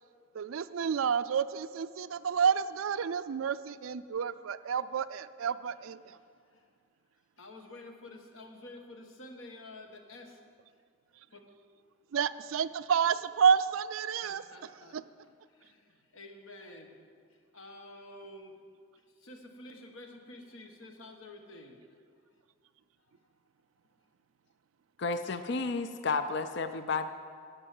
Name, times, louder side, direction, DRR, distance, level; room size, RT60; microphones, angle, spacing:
voice 1, 0.3-6.0 12.1-14.4, right 7 dB, 85° right, 14 dB, 0.4 m, -29 dB
voice 2, 6.0-6.7 7.4-10.4 11.3-11.4 14.2-16.9 17.3-18.6 19.0-21.8 23.0-23.1, left 2 dB, 75° left, 4 dB, 1.4 m, -50 dB
voice 3, 25.0-27.1, left 4 dB, 55° left, 10 dB, 0.5 m, -32 dB
11.0 x 7.9 x 7.6 m, 2.1 s
head